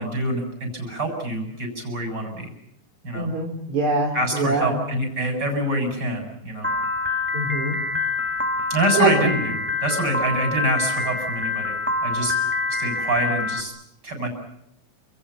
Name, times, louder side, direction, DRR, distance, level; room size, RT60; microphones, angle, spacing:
voice 1, 0.0-2.5 3.0-3.3 4.1-6.7 8.7-11.8 12.0-12.3 12.7-13.7 14.0-14.3, right 1 dB, 35° right, 4 dB, 8.1 m, -26 dB
voice 2, 3.1-4.8 7.3-7.8 9.0-9.3, right 2 dB, 70° right, 1 dB, 5.0 m, -23 dB
Piano, 6.6-13.6, left 3 dB, 10° right, 0.7 m, -26 dB
30.0 x 28.0 x 5.7 m, 0.81 s
omnidirectional pair, 3.4 m